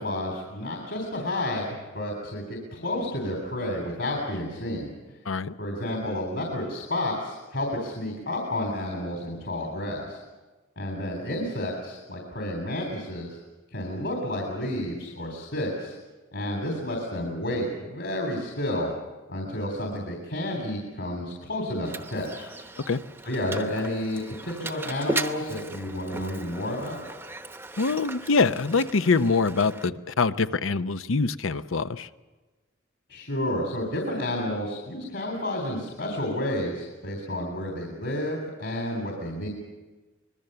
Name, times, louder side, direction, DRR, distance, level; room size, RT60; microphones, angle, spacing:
voice 1, 0.0-4.9 5.6-10.2 10.8-13.4 13.7-16.0 16.3-18.9 19.3-22.5 23.2-27.0 33.1-39.5, left 1 dB, 65° left, 1 dB, 3.8 m, -31 dB
Mechanisms, 21.8-29.9, right 2 dB, 10° right, 0.9 m, -37 dB
voice 2, 27.8-32.1, left 4 dB, 80° left, 12 dB, 0.7 m, -24 dB
25.0 x 21.0 x 6.9 m, 1.2 s
head